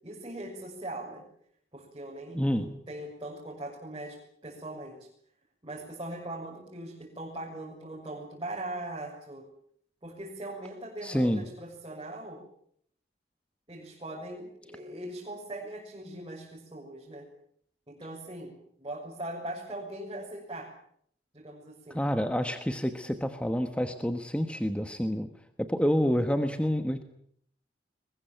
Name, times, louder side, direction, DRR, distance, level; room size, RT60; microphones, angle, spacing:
voice 1, 0.0-1.2 1.7-5.0 5.6-9.4 10.0-12.4 13.7-17.2 17.9-18.5 18.8-20.7 21.3-22.0, right 1 dB, 25° right, -4 dB, 6.9 m, -40 dB
voice 2, 2.3-2.7 11.0-11.4 21.9-25.3 25.6-27.0, equal, 5° left, 8 dB, 1.2 m, -28 dB
23.0 x 21.0 x 9.2 m, 0.66 s
head